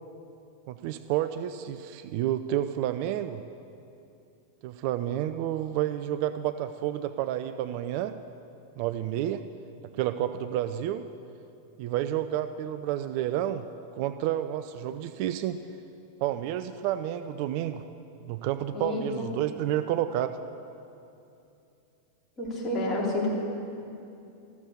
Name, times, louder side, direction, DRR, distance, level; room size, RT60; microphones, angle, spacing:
voice 1, 0.7-3.4 4.6-8.2 8.8-9.4 10.0-11.0 11.8-13.6 13.9-15.6 16.2-17.8 18.2-20.4, right 12 dB, 45° right, 11 dB, 0.4 m, -30 dB
voice 2, 18.7-19.3 22.4-23.3, left 2 dB, 20° left, -5 dB, 3.1 m, -29 dB
13.0 x 7.2 x 7.0 m, 2.7 s
figure-of-eight pair, 90°, 0 cm